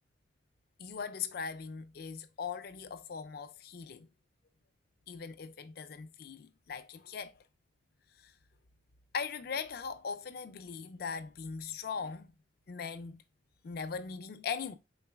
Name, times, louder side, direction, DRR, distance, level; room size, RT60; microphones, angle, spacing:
voice 1, 0.8-4.1 5.1-7.3 9.1-12.3 12.7-13.2 13.6-14.7, left 6 dB, 55° left, 0.4 m, -40 dB
3.9 x 3.9 x 2.2 m
head